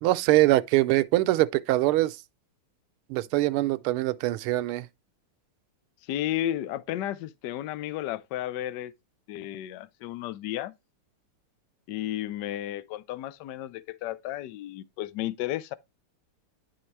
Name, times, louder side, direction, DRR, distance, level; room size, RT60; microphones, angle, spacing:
voice 1, 0.0-2.2 3.1-4.9, right 17 dB, 80° right, 1.5 m, -23 dB
voice 2, 6.0-8.9 9.3-10.7 11.9-15.7, left 13 dB, 75° left, 1.0 m, -33 dB
10.5 x 4.4 x 3.1 m
omnidirectional pair, 2.4 m